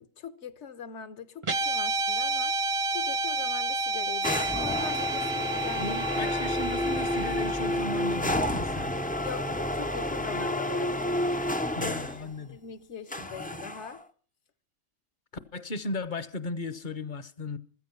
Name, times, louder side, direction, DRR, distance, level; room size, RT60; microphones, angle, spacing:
voice 1, 0.0-2.5 2.9-6.3 9.2-11.2 11.8-12.0 12.4-14.0, left 7 dB, 65° left, 1.3 m, -42 dB
Guitar, 1.4-9.9, right 2 dB, 30° right, 0.7 m, -31 dB
sound 1, 4.2-12.2 13.1-14.0, left 1 dB, 10° left, 0.3 m, -30 dB
voice 2, 5.8-8.9 11.7-12.6 15.5-17.6, left 2 dB, 40° left, 0.9 m, -36 dB
15.5 x 13.5 x 5.8 m
omnidirectional pair, 1.3 m